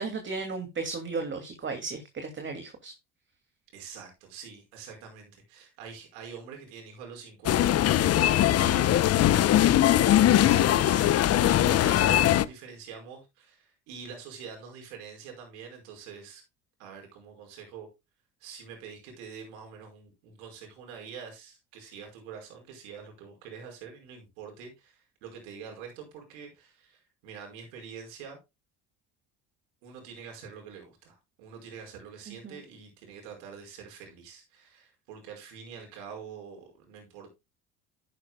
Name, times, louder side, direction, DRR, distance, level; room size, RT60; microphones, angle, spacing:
voice 1, 0.0-2.9 32.3-32.6, right 4 dB, 30° right, 2.6 m, -35 dB
voice 2, 3.7-9.2 9.5-16.4 16.8-17.9 18.4-28.4 29.8-37.3, right 6 dB, 75° right, 5.2 m, -45 dB
sound 1, 7.4-12.4, left 12 dB, 45° left, 0.8 m, -21 dB
11.0 x 10.5 x 2.3 m
hypercardioid pair, 75°, 36 cm